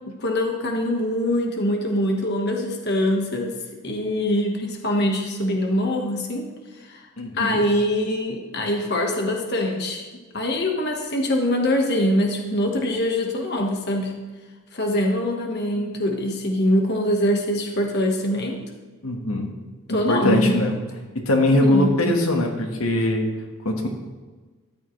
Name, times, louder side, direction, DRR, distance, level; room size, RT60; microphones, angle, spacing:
voice 1, 0.1-3.5 3.8-6.4 6.8-7.0 7.4-10.0 10.3-14.1 14.7-18.6 19.9-20.5 21.5-22.1, left 1 dB, 50° left, 1 dB, 1.5 m, -23 dB
voice 2, 7.2-7.6 19.0-19.5 19.9-20.8 21.1-23.3 23.6-23.9, left 1 dB, 85° left, 2 dB, 1.6 m, -21 dB
13.5 x 11.0 x 3.3 m, 1.3 s
head